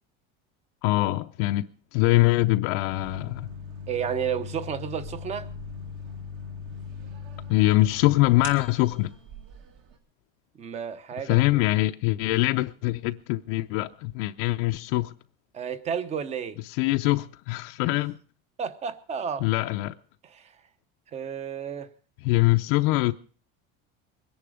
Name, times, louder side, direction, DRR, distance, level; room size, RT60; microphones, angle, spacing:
voice 1, 0.8-3.5 7.5-9.1 11.2-15.1 16.8-18.2 19.4-19.9 22.2-23.1, left 19 dB, 65° left, 0.6 m, -23 dB
sound 1, 2.9-9.9, left 4 dB, 50° right, 2.3 m, -39 dB
voice 2, 3.9-5.5 10.6-11.4 15.5-16.6 18.6-19.5 20.2-20.5 21.1-21.9, right 7 dB, 20° right, 0.9 m, -31 dB
22.5 x 10.5 x 4.9 m
cardioid pair, 170°, 29 cm